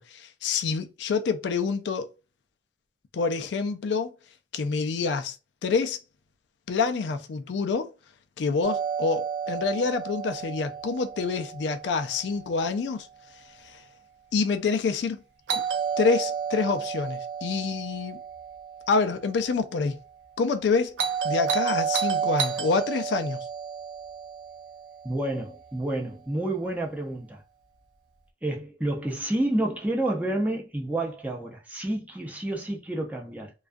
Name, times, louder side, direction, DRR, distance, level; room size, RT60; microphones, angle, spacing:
voice 1, 0.0-2.1 3.1-4.1 4.5-5.4 5.6-6.0 6.7-7.9 8.4-13.1 13.6-13.8 14.3-15.2 15.5-15.6 16.0-18.2 18.9-20.0 20.4-21.0 21.2-23.5, left 4 dB, 75° left, 0.4 m, -27 dB
Doorbell, 8.6-12.6 15.5-19.7 21.0-25.4, right 7 dB, 80° right, 0.5 m, -31 dB
voice 2, 25.0-27.4 28.4-33.5, right 1 dB, 10° right, 0.6 m, -29 dB
2.3 x 2.3 x 2.5 m
head